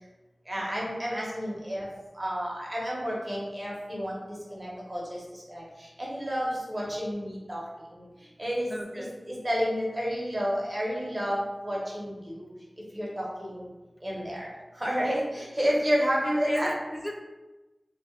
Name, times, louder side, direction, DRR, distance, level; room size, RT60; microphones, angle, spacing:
voice 1, 0.5-1.9 2.1-8.1 8.4-8.7 8.9-12.5 12.9-13.7 14.0-14.5 14.7-16.7, equal, 25° right, -4 dB, 0.9 m, -30 dB
voice 2, 8.7-9.2 16.5-17.2, equal, 5° right, 3 dB, 0.3 m, -36 dB
2.4 x 2.2 x 3.6 m, 1.1 s
wide cardioid pair, 75°, 0 cm